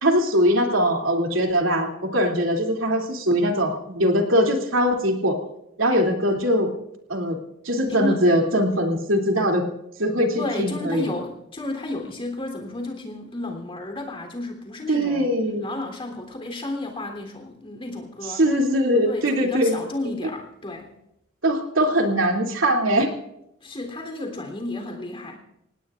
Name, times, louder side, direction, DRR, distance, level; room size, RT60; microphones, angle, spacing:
voice 1, 0.0-5.4 5.8-6.7 7.1-7.4 7.6-9.6 10.0-11.1 14.9-15.7 18.4-19.8 21.4-23.1, equal, 85° right, 2 dB, 2.8 m, -21 dB
voice 2, 7.9-8.2 10.4-15.3 15.6-18.4 19.1-20.9 23.6-25.4, left 2 dB, 30° left, 3 dB, 3.4 m, -32 dB
26.5 x 18.5 x 2.5 m, 0.82 s
head